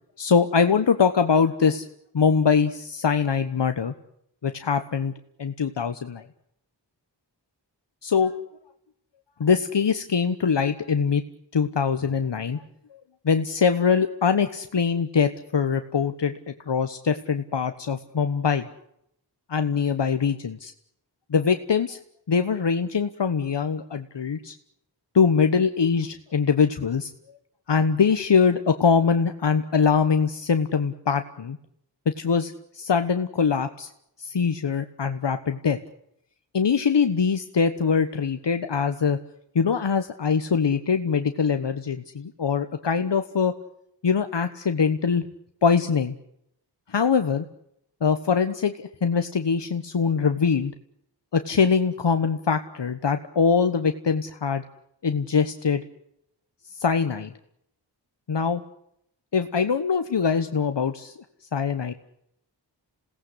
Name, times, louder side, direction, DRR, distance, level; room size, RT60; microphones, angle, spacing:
voice 1, 0.2-1.8 2.1-3.9 4.4-5.1 5.4-6.2 8.0-8.3 9.4-11.2 11.5-12.6 13.2-16.3 16.7-18.7 19.5-20.7 21.3-22.0 22.3-24.5 25.1-27.1 27.7-31.6 32.1-33.9 34.2-35.8 36.5-39.2 39.5-43.5 44.0-45.2 45.6-46.1 46.9-47.4 48.0-50.7 51.3-54.6 55.0-55.8 56.8-57.3 58.3-58.6 59.3-61.1 61.5-61.9, left 6 dB, 75° left, 8 dB, 1.2 m, -23 dB
27.5 x 18.0 x 8.1 m, 0.75 s
wide cardioid pair, 55°, 43 cm